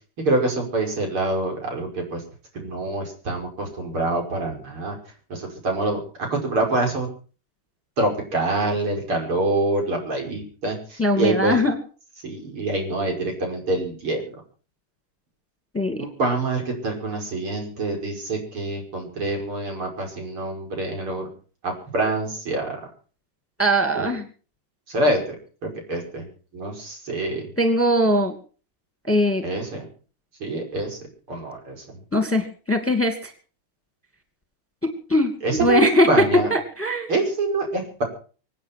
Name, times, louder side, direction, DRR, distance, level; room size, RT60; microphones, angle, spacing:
voice 1, 0.2-2.2 2.5-5.0 5.3-7.1 8.0-11.6 12.2-14.4 16.0-21.3 21.6-22.9 23.9-24.1 24.9-25.4 25.6-26.3 26.5-27.5 29.4-29.8 30.4-31.0 31.3-32.0 35.4-36.5 37.1-38.0, right 2 dB, 85° right, 2 dB, 6.3 m, -26 dB
voice 2, 11.0-11.8 15.7-16.0 23.6-24.2 27.6-28.3 29.1-29.4 32.1-33.3 35.1-35.3 35.6-36.1 36.5-37.1, equal, 5° left, 7 dB, 2.2 m, -20 dB
25.0 x 9.0 x 6.1 m, 0.40 s
omnidirectional pair, 2.3 m